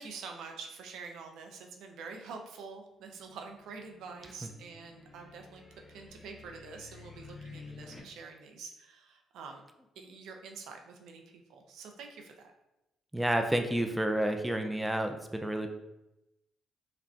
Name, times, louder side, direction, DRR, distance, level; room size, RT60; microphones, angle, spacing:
voice 1, 0.0-9.6 10.0-12.5, right 5 dB, 85° right, 3 dB, 0.5 m, -46 dB
sound 1, 3.0-8.0, left 4 dB, 15° left, 1.0 m, -52 dB
voice 2, 13.1-15.7, right 1 dB, 5° right, 5 dB, 0.4 m, -30 dB
5.0 x 2.1 x 2.8 m, 0.91 s
cardioid pair, 90°, 0 cm